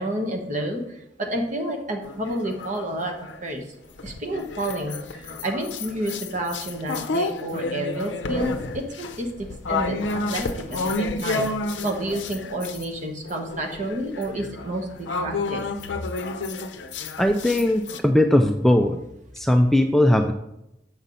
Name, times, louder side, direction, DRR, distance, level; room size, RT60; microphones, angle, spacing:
voice 1, 0.0-3.1 3.4-3.6 4.0-10.0 10.3-11.5 11.8-15.9, right 1 dB, 45° right, 3 dB, 1.1 m, -30 dB
sound 1, 2.0-3.4 4.0-12.9 13.2-18.0, left 3 dB, 90° left, 0.6 m, -30 dB
voice 2, 17.2-19.0 19.3-20.3, left 1 dB, ahead, 5 dB, 0.3 m, -19 dB
7.2 x 5.6 x 3.9 m, 0.85 s
head